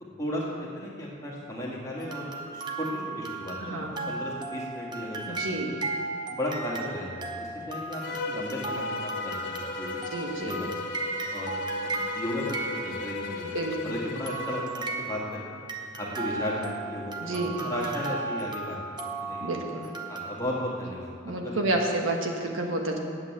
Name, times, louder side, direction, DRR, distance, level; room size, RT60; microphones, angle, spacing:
voice 1, 0.7-5.7 6.3-10.0 10.4-10.7 11.3-13.5 13.8-15.4 16.0-18.8 19.3-19.7 20.1-21.9, left 1 dB, 15° left, -5 dB, 2.0 m, -35 dB
sound 1, 2.0-13.5 14.3-20.4, right 3 dB, 20° right, 0.7 m, -36 dB
voice 2, 3.6-4.1 5.3-5.7 10.1-10.5 13.4-13.8 17.2-17.7 19.4-19.9 21.2-23.0, right 2 dB, 75° right, 1 dB, 1.3 m, -30 dB
Bowed string instrument, 8.0-14.8, left 3 dB, 60° left, 1.2 m, -36 dB
8.9 x 8.1 x 7.4 m, 2.4 s
head